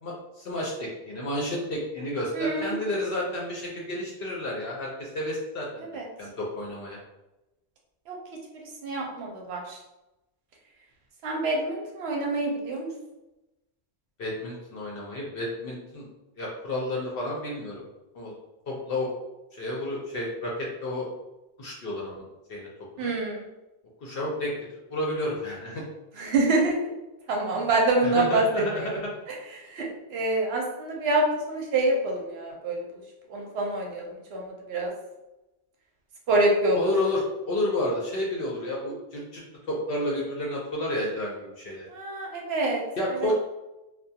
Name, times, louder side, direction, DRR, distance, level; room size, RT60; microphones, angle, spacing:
voice 1, 0.0-7.0 14.2-16.1 16.4-17.8 18.1-18.3 18.7-19.1 19.5-21.1 21.6-22.2 22.5-22.7 23.0-23.1 24.0-24.5 24.9-25.8 28.0-29.1 36.7-37.2 37.5-39.4 39.7-41.9 43.0-43.3, left 1 dB, 65° left, -3 dB, 0.7 m, -31 dB
voice 2, 2.3-2.8 5.8-6.1 8.1-8.2 8.6-9.8 11.2-12.9 23.0-23.5 26.2-26.9 27.3-28.9 29.3-32.8 33.3-34.9 36.3-36.8 41.9-42.8 43.2-43.3, right 2 dB, 70° right, 0 dB, 0.8 m, -26 dB
2.3 x 2.2 x 2.7 m, 0.98 s
omnidirectional pair, 1.1 m